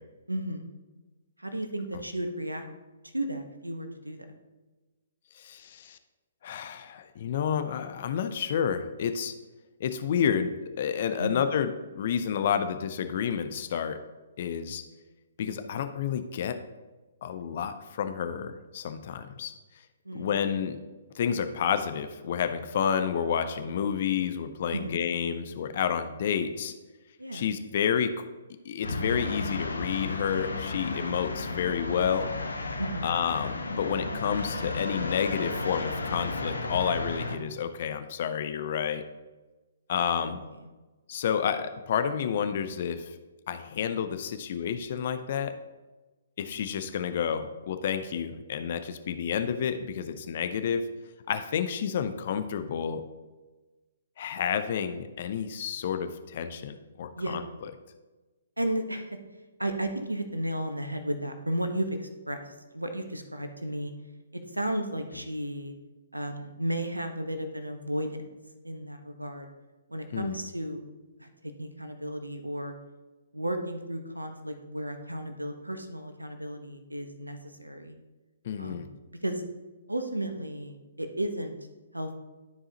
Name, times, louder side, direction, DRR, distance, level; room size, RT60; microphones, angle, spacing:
voice 1, 0.3-0.8 1.4-2.7 3.0-4.2 11.2-11.4 20.0-20.3 24.7-25.0 27.2-27.5 32.8-33.1 40.1-40.6 57.2-57.4 58.6-59.2 59.6-63.9 64.3-65.7 66.1-68.3 68.6-69.5 69.9-70.8 71.2-71.3 71.6-72.7 73.3-78.0 78.6-78.9 79.2-79.4 79.9-81.5 81.9-82.2, right 1 dB, 90° right, 7 dB, 1.0 m, -34 dB
voice 2, 5.3-6.0 6.4-9.3 9.8-14.0 14.4-14.8 15.4-16.6 17.2-19.5 20.1-20.8 21.1-26.7 27.3-28.1 28.6-32.3 33.0-39.0 39.9-40.4 41.1-43.1 43.5-45.5 46.4-50.9 51.3-53.0 54.2-57.4 70.1-70.4 78.4-78.9, left 8 dB, 50° left, 9 dB, 0.5 m, -30 dB
sound 1, 28.8-37.4, left 3 dB, 75° left, 0.9 m, -33 dB
12.5 x 4.8 x 2.9 m, 1.2 s
figure-of-eight pair, 125°, 0 cm